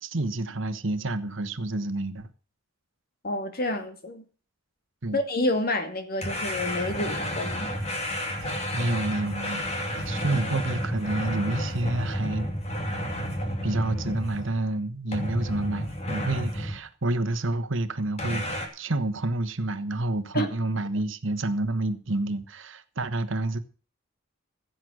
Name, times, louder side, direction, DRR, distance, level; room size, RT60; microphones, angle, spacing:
voice 1, 0.0-2.3 5.0-5.2 8.4-9.7 10.0-12.5 13.6-23.6, right 2 dB, 65° right, 1.3 m, -29 dB
voice 2, 3.2-4.2 5.1-7.7 20.3-20.5, left 1 dB, 50° left, 2.3 m, -28 dB
sound 1, 6.2-14.7 15.1-16.8 18.2-18.7, equal, 35° left, 2.8 m, -31 dB
16.0 x 7.8 x 6.4 m
head